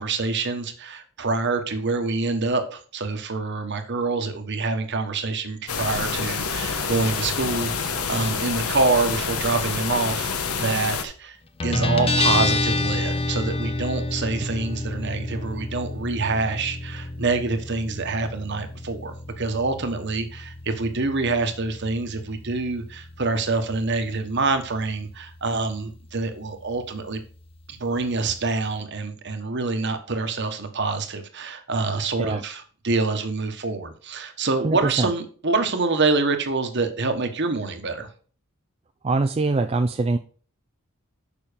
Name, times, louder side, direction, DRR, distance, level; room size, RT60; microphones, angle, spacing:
voice 1, 0.0-11.4 11.6-27.2 27.7-38.1, right 3 dB, 50° right, 7 dB, 1.3 m, -26 dB
sound 1, 5.7-11.0, left 5 dB, 80° left, 1.1 m, -27 dB
Guitar, 11.6-28.8, left 2 dB, 25° left, 0.7 m, -30 dB
voice 2, 34.6-35.1 39.0-40.2, right 3 dB, 25° right, 8 dB, 0.4 m, -23 dB
7.0 x 5.7 x 5.1 m, 0.42 s
head